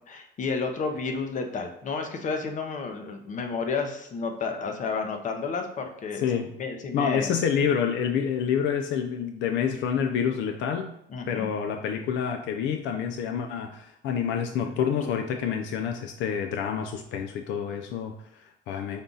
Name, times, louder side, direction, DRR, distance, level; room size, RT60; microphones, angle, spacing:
voice 1, 0.1-6.3 6.6-7.3 11.1-11.5 14.6-15.1, left 4 dB, 40° left, 5 dB, 0.7 m, -31 dB
voice 2, 6.2-6.5 6.9-10.9 11.3-19.0, left 7 dB, 75° left, 5 dB, 0.5 m, -28 dB
5.3 x 2.4 x 3.9 m, 0.78 s
cardioid pair, 120°, 19 cm